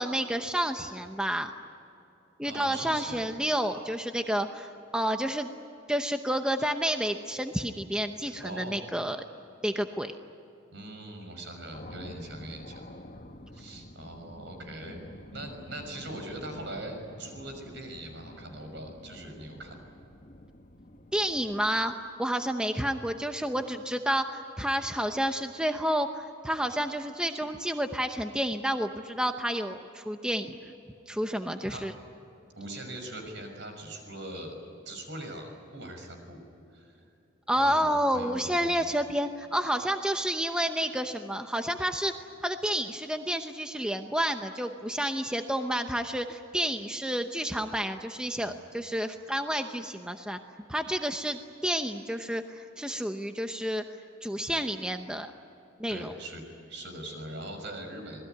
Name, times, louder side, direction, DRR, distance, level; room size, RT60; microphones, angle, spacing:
voice 1, 0.0-1.5 2.4-5.5 5.9-9.2 9.6-10.1 21.1-30.7 31.1-31.9 37.5-42.1 42.4-50.4 50.7-53.8 54.2-55.3 55.8-56.1, equal, 5° right, 6 dB, 0.8 m, -30 dB
voice 2, 2.4-3.2 8.4-8.9 10.7-12.8 13.5-15.0 15.3-19.9 31.7-31.8 32.6-34.6 34.8-36.4 36.7-36.9 37.6-39.0 48.4-48.5 49.6-49.7 55.9-58.2, right 1 dB, 65° right, 4 dB, 6.2 m, -41 dB
sound 1, 11.7-22.1, left 1 dB, 40° left, 1.6 m, -48 dB
27.0 x 20.0 x 9.5 m, 2.8 s
head